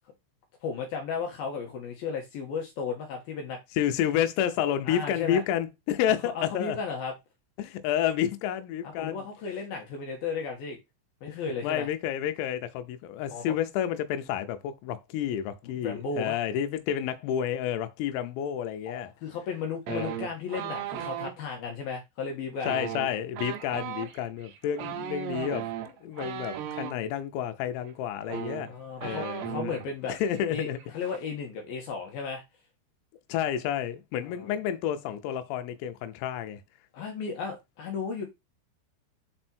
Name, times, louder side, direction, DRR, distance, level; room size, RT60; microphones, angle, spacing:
voice 1, 0.6-3.6 4.9-5.4 6.3-7.1 8.8-10.8 11.2-11.9 13.3-13.6 15.6-16.4 18.9-22.7 28.7-30.1 30.5-32.4 34.2-34.6 36.9-38.3, left 5 dB, 65° left, 2.5 m, -35 dB
voice 2, 3.8-6.8 7.6-9.2 11.3-19.1 19.9-20.1 22.7-28.7 29.0-29.7 30.1-30.8 33.3-36.6, left 10 dB, 85° left, 3.5 m, -30 dB
sound 1, 19.9-21.3 22.6-26.9 27.9-28.0 28.2-29.9 30.2-30.4 30.7-31.2, right 11 dB, 85° right, 2.4 m, -36 dB
7.1 x 4.4 x 4.4 m
omnidirectional pair, 6.0 m